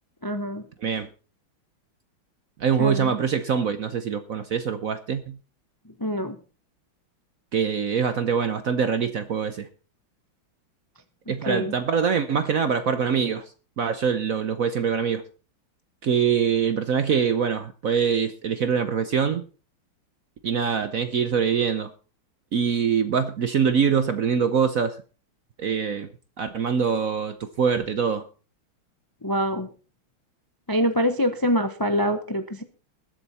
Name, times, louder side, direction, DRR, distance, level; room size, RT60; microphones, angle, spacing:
voice 1, 0.2-0.6 2.8-3.1 6.0-6.4 11.5-11.7 29.2-29.7 30.7-32.6, equal, 25° left, 0.4 m, -25 dB
voice 2, 2.6-5.4 7.5-9.7 11.3-13.4 13.8-15.2 16.0-19.4 20.4-21.9 22.5-25.0 25.6-26.1 26.4-28.3, right 6 dB, 60° right, 0.9 m, -24 dB
20.5 x 8.0 x 4.2 m
omnidirectional pair, 2.3 m